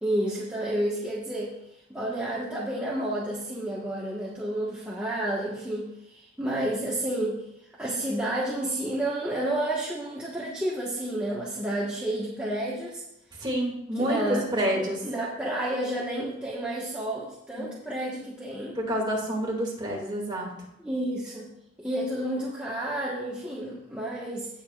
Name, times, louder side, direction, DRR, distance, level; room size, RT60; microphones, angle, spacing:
voice 1, 0.0-1.5 1.9-7.4 7.8-13.0 13.9-18.8 20.8-21.5 21.8-24.5, right 1 dB, 5° right, -7 dB, 1.4 m, -30 dB
voice 2, 13.4-15.0 17.6-17.7 18.8-20.5, equal, 25° right, -2 dB, 2.3 m, -28 dB
17.0 x 7.1 x 2.5 m, 0.82 s
head